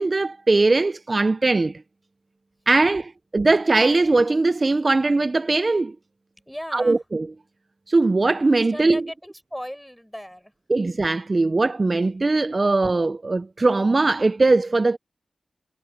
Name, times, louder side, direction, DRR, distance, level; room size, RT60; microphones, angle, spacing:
voice 1, 0.0-1.7 2.7-5.9 6.7-7.2 7.9-9.0 10.7-15.0, right 3 dB, 45° right, 0.5 m, -20 dB
voice 2, 6.5-7.0 8.7-10.5, equal, 5° left, 7.9 m, -36 dB
cardioid pair, 40°, 0 cm